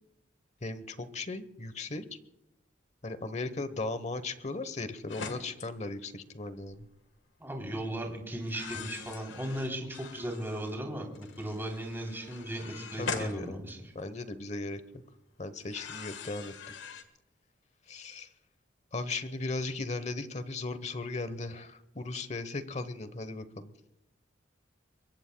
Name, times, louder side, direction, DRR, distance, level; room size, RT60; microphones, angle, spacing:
voice 1, 0.6-2.0 3.0-6.9 13.0-13.6 13.9-14.8 15.4-16.5 17.9-18.3 18.9-23.7, left 2 dB, 35° left, 13 dB, 1.0 m, -37 dB
sound 1, 5.1-5.7 6.6-6.8 8.4-10.8 11.2-14.2 15.6-17.0, left 5 dB, 70° left, 1.5 m, -42 dB
voice 2, 7.4-13.9, right 1 dB, 10° right, 1 dB, 3.3 m, -37 dB
24.0 x 22.5 x 2.3 m, 0.86 s
head